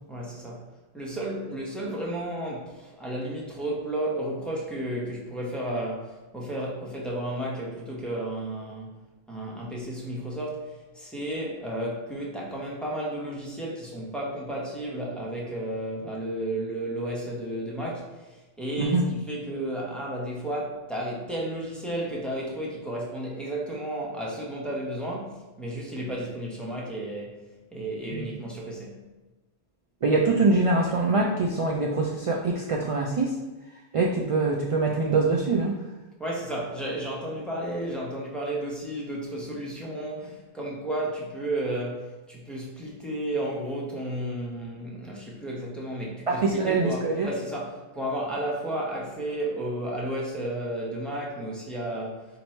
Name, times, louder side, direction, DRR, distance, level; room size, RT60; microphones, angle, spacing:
voice 1, 0.1-0.6 0.9-9.0 9.3-27.4 27.7-29.0 36.2-52.3, right 1 dB, ahead, -4 dB, 0.8 m, -33 dB
voice 2, 30.0-33.4 33.9-35.8 46.3-47.3, right 3 dB, 65° right, -1 dB, 0.3 m, -24 dB
4.4 x 2.6 x 4.3 m, 1.1 s
omnidirectional pair, 1.1 m